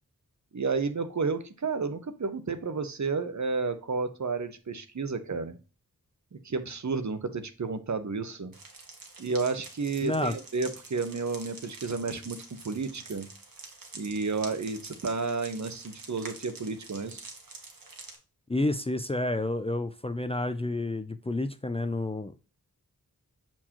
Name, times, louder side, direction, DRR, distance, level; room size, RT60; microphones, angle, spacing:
voice 1, 0.5-5.6 6.3-8.5 9.2-12.4 12.6-13.3 13.9-17.2, right 4 dB, 55° right, 10 dB, 0.9 m, -31 dB
sound 1, 8.5-18.2, right 3 dB, 75° right, 1.6 m, -47 dB
voice 2, 10.0-10.3 18.5-22.3, left 2 dB, 15° left, 10 dB, 0.4 m, -29 dB
7.3 x 4.5 x 2.9 m, 0.34 s
wide cardioid pair, 90°, 34 cm